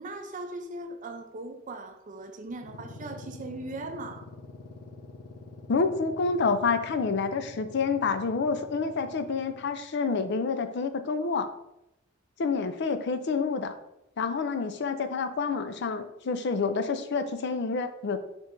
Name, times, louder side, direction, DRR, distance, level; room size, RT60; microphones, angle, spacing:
voice 1, 0.0-4.3, right 2 dB, 40° right, 6 dB, 0.5 m, -39 dB
sound 1, 2.5-9.8, left 3 dB, 90° left, 0.8 m, -47 dB
voice 2, 5.7-11.5 12.4-13.7 14.2-18.2, left 4 dB, 60° left, 9 dB, 0.4 m, -28 dB
4.6 x 4.4 x 2.6 m, 0.84 s
head